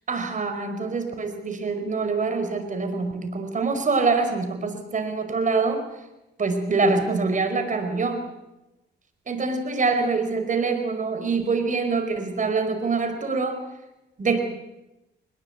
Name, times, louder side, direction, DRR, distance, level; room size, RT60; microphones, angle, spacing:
voice 1, 0.1-5.8 6.4-8.2 9.3-13.6 14.2-14.4, right 4 dB, 40° right, 7 dB, 5.0 m, -25 dB
24.0 x 21.0 x 8.2 m, 0.97 s
cardioid pair, 90°, 20 cm